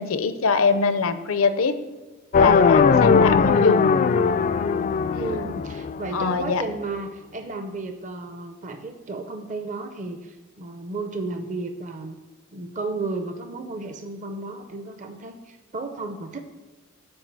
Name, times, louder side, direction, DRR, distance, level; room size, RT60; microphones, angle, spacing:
voice 1, 0.0-1.8 2.4-3.9 6.1-6.6, left 4 dB, 80° left, 10 dB, 0.7 m, -23 dB
sound 1, 2.3-6.4, left 5 dB, 40° left, 0.3 m, -19 dB
voice 2, 5.1-12.2 12.5-16.4, right 3 dB, 40° right, 7 dB, 0.6 m, -33 dB
8.9 x 4.7 x 6.8 m, 1.2 s
head